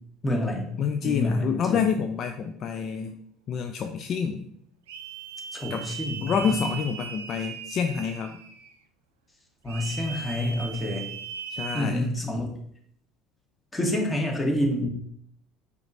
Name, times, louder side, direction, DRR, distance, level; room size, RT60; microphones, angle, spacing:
voice 1, 0.2-0.8 1.0-1.9 5.5-6.6 9.6-11.1 11.7-12.4 13.7-14.9, left 1 dB, 20° left, 0 dB, 1.2 m, -28 dB
voice 2, 0.8-3.2 3.5-4.5 5.7-5.9 6.2-8.4 11.5-12.0, left 7 dB, 50° left, 6 dB, 0.3 m, -28 dB
sound 1, 4.9-8.7 9.7-11.9, right 6 dB, 80° right, 0.4 m, -38 dB
4.9 x 3.1 x 2.6 m, 0.68 s
hypercardioid pair, 70°, 0 cm